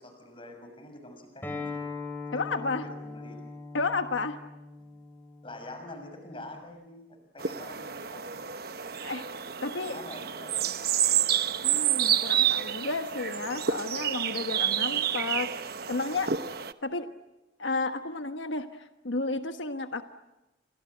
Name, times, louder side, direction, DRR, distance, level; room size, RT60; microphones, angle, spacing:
voice 1, 0.0-1.8 2.3-3.4 4.8-4.9 5.4-8.5 9.8-10.7, left 1 dB, 30° left, 6 dB, 6.3 m, -46 dB
Acoustic guitar, 1.4-6.6, left 3 dB, 10° left, 5.2 m, -41 dB
voice 2, 2.3-2.9 3.7-4.4 9.0-9.2 9.6-10.0 11.6-16.3 16.8-17.1 17.6-20.0, left 3 dB, 90° left, 7 dB, 1.3 m, -32 dB
sound 1, 7.4-16.7, right 9 dB, 55° right, 1.0 m, -29 dB
29.5 x 25.0 x 8.0 m, 1.0 s
head